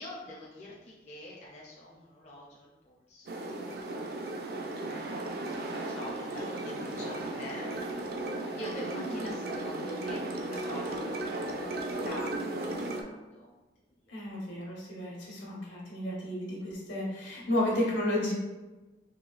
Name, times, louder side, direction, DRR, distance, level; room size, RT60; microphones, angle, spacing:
voice 1, 0.0-4.4 4.7-8.1 8.5-13.5 14.0-14.1, left 1 dB, 35° left, -4 dB, 0.5 m, -46 dB
sound 1, 3.3-13.0, right 2 dB, 50° right, 0.4 m, -35 dB
voice 2, 14.1-18.3, left 1 dB, 80° left, -4 dB, 1.2 m, -32 dB
3.9 x 3.1 x 2.4 m, 1.1 s
head